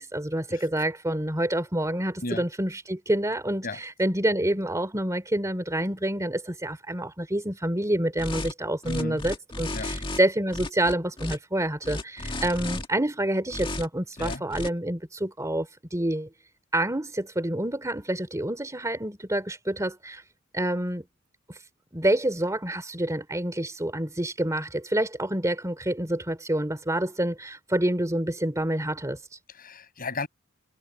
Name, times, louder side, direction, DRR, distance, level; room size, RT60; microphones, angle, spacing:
voice 1, 0.0-16.3 16.7-20.2 20.5-21.1 21.5-21.6 21.9-29.4, right 1 dB, 15° right, 3.0 m, -28 dB
sound 1, 8.2-8.5 8.8-10.2 10.5-11.4 11.8-12.9 13.5-13.9 14.2-14.7, left 2 dB, 25° left, 1.7 m, -33 dB
voice 2, 8.8-9.2 9.7-9.9 14.2-14.4 29.6-30.3, left 2 dB, 45° left, 5.8 m, -33 dB
head